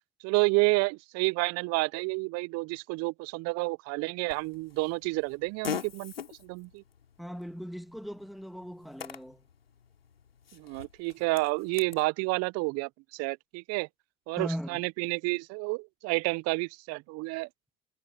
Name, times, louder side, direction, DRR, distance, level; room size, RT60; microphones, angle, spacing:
voice 1, 0.2-6.1 6.4-6.8 10.5-13.9 14.3-17.5, right 26 dB, 60° right, 0.9 m, -30 dB
Fart, 4.3-12.0, left 7 dB, 85° left, 3.1 m, -43 dB
voice 2, 7.2-9.4 14.4-14.8, equal, ahead, 2.5 m, -38 dB
figure-of-eight pair, 60°, 29 cm